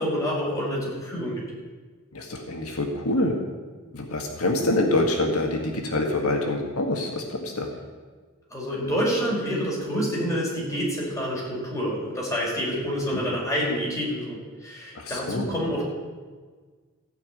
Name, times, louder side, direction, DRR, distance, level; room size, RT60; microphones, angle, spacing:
voice 1, 0.0-1.4 8.5-15.8, equal, 15° left, -5 dB, 5.1 m, -27 dB
voice 2, 2.1-3.4 3.9-7.7 13.1-13.2 15.0-15.5, left 2 dB, 90° left, 2 dB, 1.8 m, -26 dB
16.0 x 6.0 x 9.1 m, 1.4 s
head